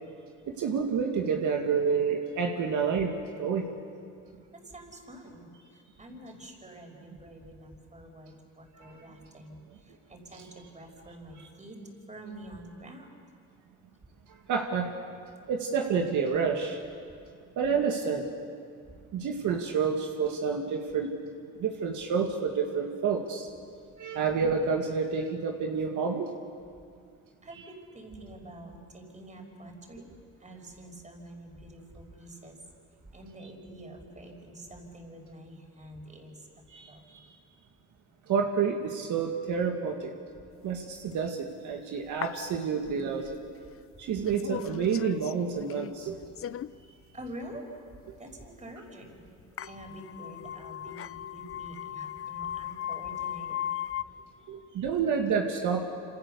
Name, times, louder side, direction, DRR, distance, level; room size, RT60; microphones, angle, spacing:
voice 1, 0.5-3.7 8.8-8.9 14.5-15.0 15.5-16.8 17.6-18.3 19.1-21.1 21.5-23.5 24.0-26.3 36.7-37.2 38.3-40.1 40.6-43.4 44.0-46.2 54.5-55.8, right 6 dB, 80° right, 2 dB, 2.2 m, -29 dB
voice 2, 4.5-11.8 12.1-13.2 27.4-30.1 30.4-32.6 33.1-36.5 36.9-37.3 47.1-47.7 48.2-49.2 49.6-53.6, right 1 dB, 25° right, 3 dB, 5.3 m, -47 dB
sound 1, 41.1-41.2 42.1-43.4 43.7-43.8 44.3-45.3 45.6-46.0 46.3-46.7 47.2-47.3 47.5-47.6 48.0-48.2 49.0-49.1 49.4-54.0, left 10 dB, 45° left, 0.6 m, -37 dB
27.0 x 26.5 x 6.9 m, 2.3 s
cardioid pair, 90°, 30 cm